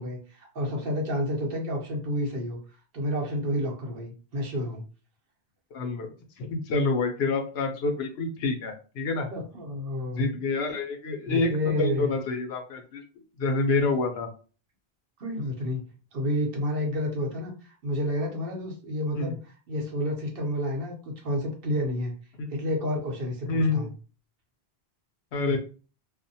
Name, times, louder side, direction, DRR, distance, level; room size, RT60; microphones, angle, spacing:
voice 1, 0.0-2.6 2.9-4.8 9.3-10.3 11.3-12.1 15.2-15.8 16.1-22.1 22.5-23.9 25.5-25.6, left 1 dB, 65° right, 1 dB, 0.9 m, -30 dB
voice 2, 5.7-6.1 6.4-9.3 10.1-13.0 13.4-14.3 19.1-19.3 22.4-22.5 23.5-23.9 25.3-25.6, left 3 dB, 80° left, 4 dB, 0.9 m, -27 dB
2.4 x 2.1 x 2.7 m, 0.37 s
omnidirectional pair, 1.0 m